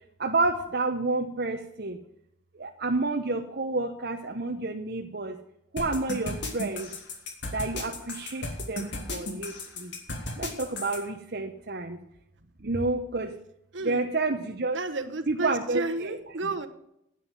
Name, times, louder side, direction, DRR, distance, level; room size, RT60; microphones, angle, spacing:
voice 1, 0.2-2.0 2.6-5.3 5.7-6.9 7.5-9.5 9.8-9.9 10.4-12.0 12.6-13.3 13.8-14.8 15.3-16.2, right 3 dB, 50° right, 3 dB, 1.0 m, -29 dB
sound 1, 5.8-11.0, left 2 dB, 60° left, 2.5 m, -35 dB
voice 2, 13.7-14.0 14.7-16.7, right 2 dB, 70° right, 8 dB, 1.3 m, -32 dB
11.0 x 9.2 x 7.3 m, 0.78 s
head